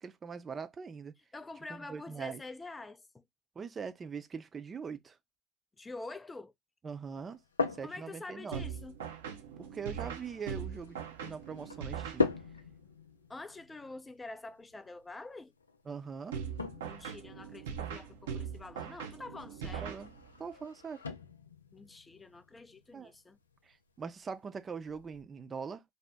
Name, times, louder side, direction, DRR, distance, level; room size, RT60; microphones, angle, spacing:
voice 1, 0.0-1.1 1.7-2.4 3.6-5.2 6.8-7.4 7.7-8.6 9.6-12.3 15.9-16.3 19.8-20.1 20.4-21.0 22.9-23.1 23.6-25.8, right 6 dB, 30° right, 0.6 m, -42 dB
voice 2, 1.3-3.2 5.8-6.5 7.8-9.0 13.3-15.5 16.8-19.9 21.7-23.4, left 3 dB, 20° left, 0.4 m, -46 dB
sound 1, 7.2-25.2, left 4 dB, 90° left, 0.4 m, -42 dB
sound 2, 8.5-12.7 16.3-20.5, right 7 dB, 75° right, 0.6 m, -41 dB
2.7 x 2.1 x 3.5 m
hypercardioid pair, 70°, 0 cm